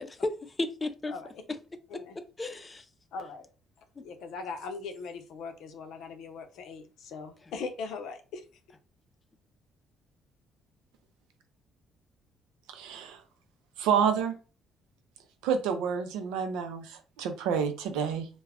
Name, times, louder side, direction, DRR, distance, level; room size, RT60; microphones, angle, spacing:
voice 1, 0.0-1.1 1.5-1.6 1.9-2.9 4.0-4.1 7.4-7.5, left 2 dB, 25° left, 0.4 m, -34 dB
voice 2, 3.1-3.5 4.0-8.4, left 4 dB, 75° left, 0.5 m, -40 dB
voice 3, 12.7-13.2 13.8-14.4 15.4-18.3, right 7 dB, 90° right, 0.4 m, -29 dB
2.3 x 2.1 x 3.4 m
supercardioid pair, 80°, 0 cm